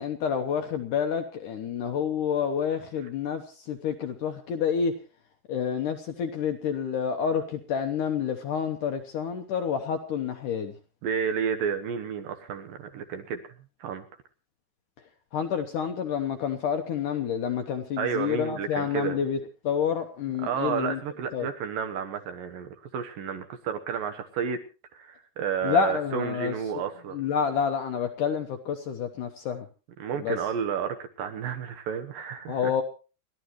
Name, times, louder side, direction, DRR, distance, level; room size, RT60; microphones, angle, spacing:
voice 1, 0.0-4.9 5.5-10.7 15.3-19.4 19.6-21.0 21.3-21.5 25.6-26.5 27.1-29.7 30.2-30.4 32.5-32.8, left 7 dB, 70° left, 6 dB, 2.1 m, -28 dB
voice 2, 11.0-13.5 13.8-14.0 18.0-19.2 20.4-24.6 24.9-27.2 30.0-32.7, right 7 dB, 70° right, 7 dB, 2.5 m, -31 dB
29.5 x 11.5 x 3.1 m, 0.34 s
omnidirectional pair, 4.7 m